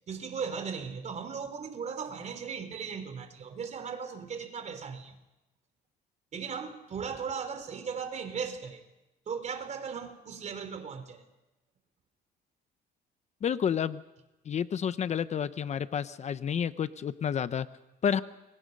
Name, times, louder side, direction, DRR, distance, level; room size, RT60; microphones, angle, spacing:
voice 1, 0.1-5.2 6.3-8.8 9.3-11.2, right 6 dB, 45° right, 3.6 m, -37 dB
voice 2, 13.4-14.0 14.5-17.7 18.0-18.2, left 8 dB, 40° left, 0.9 m, -30 dB
29.5 x 24.0 x 5.4 m
cardioid pair, 110°, 17 cm